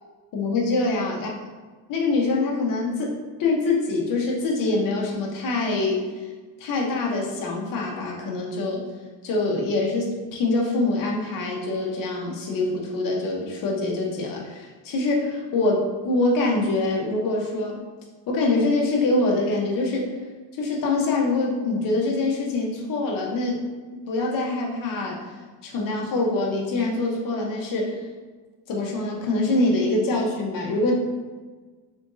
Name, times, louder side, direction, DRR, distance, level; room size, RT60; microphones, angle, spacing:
voice 1, 0.3-1.3 1.9-6.0 6.6-8.8 9.2-17.8 18.3-20.1 20.6-23.6 24.1-25.2 25.6-28.0 28.7-30.9, left 2 dB, 50° left, -1 dB, 1.0 m, -24 dB
3.6 x 3.4 x 2.6 m, 1.4 s
cardioid pair, 140°, 43 cm